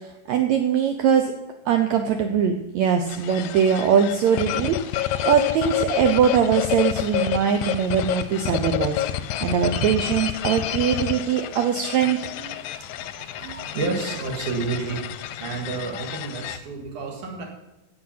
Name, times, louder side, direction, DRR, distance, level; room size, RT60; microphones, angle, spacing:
voice 1, 0.3-1.3 1.7-9.0 9.4-12.5 13.4-13.6, right 7 dB, 85° right, 6 dB, 1.6 m, -22 dB
sound 1, 3.1-16.6, left 11 dB, 90° left, 2.3 m, -29 dB
voice 2, 12.8-17.4, right 4 dB, 65° right, 1 dB, 3.2 m, -31 dB
16.0 x 5.8 x 5.7 m, 1.0 s
omnidirectional pair, 4.0 m